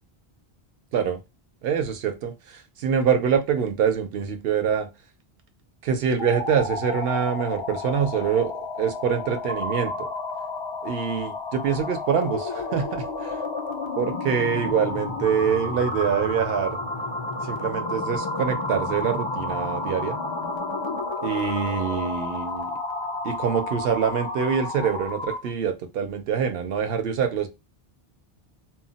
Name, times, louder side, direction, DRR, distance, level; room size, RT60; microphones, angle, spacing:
voice 1, 1.6-4.9 5.8-10.1 10.8-13.4 14.0-16.8 17.4-20.2 21.2-22.7 23.2-27.5, right 7 dB, 70° right, 0.8 m, -25 dB
sound 1, 6.2-25.5, left 2 dB, 50° left, 0.3 m, -31 dB
2.2 x 2.0 x 3.8 m
omnidirectional pair, 1.1 m